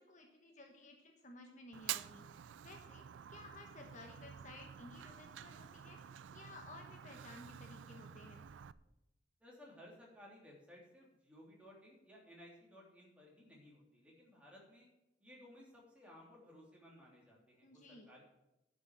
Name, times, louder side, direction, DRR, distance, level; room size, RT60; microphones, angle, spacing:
voice 1, 0.0-3.0 3.3-8.4 17.6-18.1, left 2 dB, 40° left, 3 dB, 1.2 m, -56 dB
Fire, 1.7-8.7, right 11 dB, 85° right, 0.4 m, -49 dB
sound 1, 3.0-8.8, right 1 dB, 55° right, 1.7 m, -71 dB
voice 2, 9.4-14.9 15.2-18.2, left 1 dB, 5° right, -4 dB, 3.2 m, -59 dB
11.0 x 6.2 x 7.5 m, 0.91 s
head